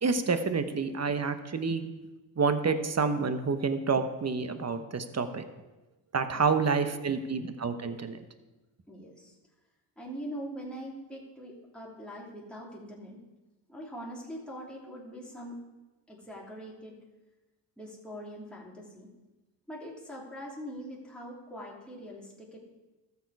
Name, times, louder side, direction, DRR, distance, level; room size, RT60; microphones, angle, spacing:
voice 1, 0.0-1.8 2.4-5.4 6.1-8.2, right 5 dB, 30° right, 9 dB, 1.1 m, -28 dB
voice 2, 6.3-7.1 8.9-9.4 10.0-13.2 13.7-15.6 16.1-17.0 17.8-19.1 19.7-22.6, equal, ahead, -5 dB, 3.0 m, -43 dB
12.5 x 7.3 x 4.8 m, 1.1 s
supercardioid pair, 60°, 50 cm